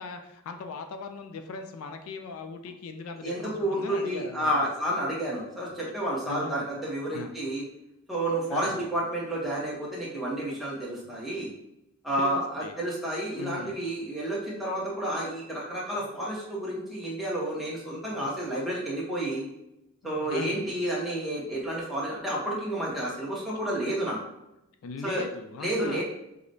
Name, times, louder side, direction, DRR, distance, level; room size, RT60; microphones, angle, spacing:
voice 1, 0.0-4.7 6.2-6.7 7.1-7.3 8.5-8.8 11.0-11.2 12.2-12.7 13.4-13.8 20.0-20.7 23.8-23.9 24.8-26.0, left 4 dB, 80° left, 6 dB, 0.3 m, -39 dB
voice 2, 3.2-7.6 8.1-11.5 12.0-19.5 20.0-24.2 25.0-25.2 25.6-26.0, right 1 dB, ahead, -6 dB, 0.7 m, -30 dB
4.8 x 2.1 x 2.6 m, 0.86 s
head